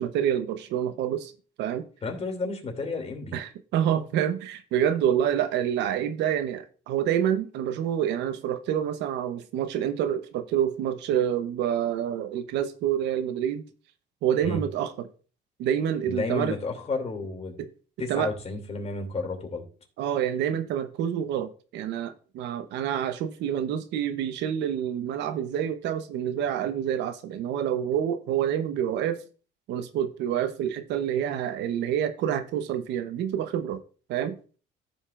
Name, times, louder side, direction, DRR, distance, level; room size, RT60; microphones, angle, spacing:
voice 1, 0.0-1.3 1.6-1.9 3.3-13.6 14.2-14.9 15.6-16.6 17.6-17.7 18.1-18.3 20.0-29.2 29.7-33.8 34.1-34.4, right 9 dB, 80° right, 0.9 m, -27 dB
voice 2, 2.0-3.4 14.4-14.6 16.1-17.6 18.0-19.7, left 3 dB, 35° left, 2.6 m, -32 dB
15.0 x 5.4 x 2.5 m
cardioid pair, 90°, 18 cm